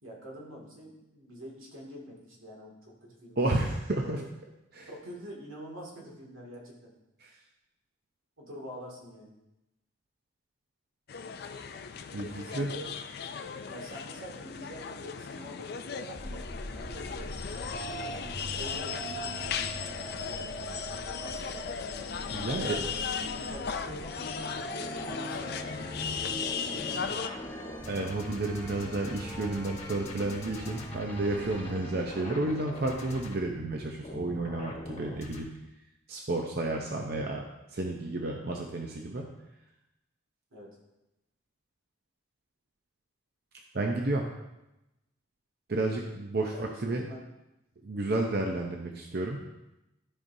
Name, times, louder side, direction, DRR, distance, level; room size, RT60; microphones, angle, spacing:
voice 1, 0.0-3.6 4.0-4.2 4.9-6.9 8.4-9.3 12.4-12.9 13.7-17.3 18.0-20.5 21.0-21.9 22.4-27.6 40.5-40.8 46.4-47.2, equal, 90° right, -2 dB, 2.2 m, -46 dB
voice 2, 3.4-4.2 4.7-4.9 7.2-7.3 12.1-12.7 22.3-22.8 27.9-35.5 36.1-37.4 37.7-39.3 43.7-44.2 45.7-47.0 47.8-49.4, right 2 dB, 50° right, 1 dB, 0.7 m, -31 dB
sound 1, 11.1-27.3, left 6 dB, 50° left, 0.4 m, -37 dB
sound 2, 16.1-35.4, equal, 30° left, 1.2 m, -42 dB
sound 3, 24.8-32.1, left 1 dB, 10° left, 0.8 m, -46 dB
13.0 x 5.3 x 2.7 m, 0.95 s
head